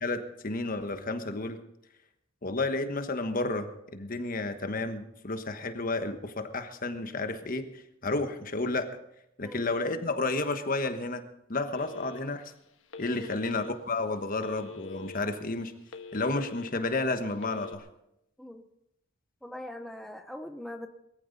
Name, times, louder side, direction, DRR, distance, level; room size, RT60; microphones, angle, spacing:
voice 1, 0.0-1.6 2.4-8.9 9.4-11.2 11.5-12.4 13.0-15.7 16.1-17.9, left 2 dB, 45° left, 8 dB, 1.3 m, -31 dB
Telephone, 11.7-12.4 12.9-13.7 14.4-15.2 15.6-16.7 17.3-17.8, left 4 dB, 85° left, 1.3 m, -44 dB
voice 2, 19.4-20.9, left 1 dB, ahead, 5 dB, 0.7 m, -41 dB
21.5 x 14.5 x 4.1 m, 0.81 s
head